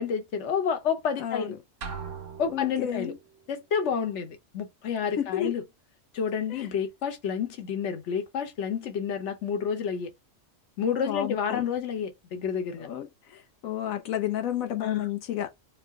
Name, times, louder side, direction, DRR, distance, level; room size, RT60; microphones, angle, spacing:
voice 1, 0.0-1.5 2.4-3.1 3.5-5.6 6.1-10.1 10.8-12.9 14.8-15.0, left 7 dB, 60° left, 1.2 m, -29 dB
voice 2, 1.2-1.6 2.5-3.2 5.2-5.5 6.5-6.7 11.0-11.7 12.8-15.5, left 11 dB, 85° left, 1.2 m, -31 dB
sound 1, 1.8-3.3, right 6 dB, 70° right, 1.3 m, -40 dB
4.7 x 2.1 x 3.5 m
omnidirectional pair, 1.4 m